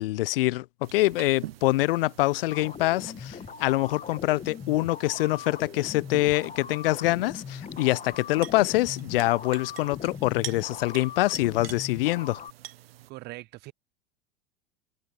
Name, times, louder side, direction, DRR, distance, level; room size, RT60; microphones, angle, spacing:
voice 1, 0.0-12.4, left 18 dB, 65° left, 0.5 m, -25 dB
sound 1, 0.8-13.1, right 14 dB, 75° right, 1.1 m, -46 dB
sound 2, 2.5-12.5, left 7 dB, 25° left, 2.0 m, -41 dB
voice 2, 13.1-13.7, right 20 dB, 35° right, 0.4 m, -41 dB
hypercardioid pair, 85°, 30 cm